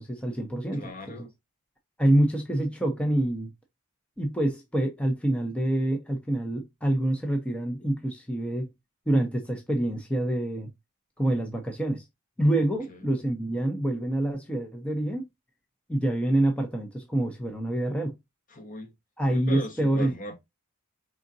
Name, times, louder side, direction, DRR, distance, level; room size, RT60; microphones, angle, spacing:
voice 1, 0.0-1.3 2.0-3.5 4.2-8.7 9.1-10.7 11.2-12.0 12.4-15.3 15.9-18.2 19.2-20.1, right 1 dB, 5° left, 0.7 m, -26 dB
voice 2, 0.7-1.3 12.6-13.1 18.5-18.9 19.3-20.4, left 1 dB, 40° left, 1.2 m, -39 dB
4.9 x 3.8 x 2.6 m
head